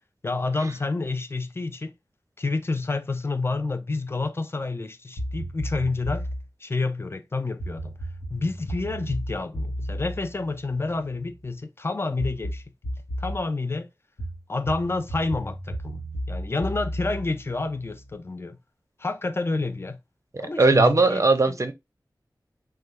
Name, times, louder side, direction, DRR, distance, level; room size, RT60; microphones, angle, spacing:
voice 1, 0.2-1.9 2.4-6.3 6.6-7.9 8.3-12.6 13.2-13.9 14.5-18.6 19.0-20.0 20.4-21.6, left 3 dB, 30° left, 0.4 m, -29 dB
sound 1, 5.2-6.5 7.6-11.3 12.2-13.4 14.2-18.1, equal, 80° left, 0.9 m, -33 dB
voice 2, 20.3-21.7, right 3 dB, 45° right, 0.5 m, -19 dB
3.3 x 2.2 x 3.2 m
wide cardioid pair, 65°, 8 cm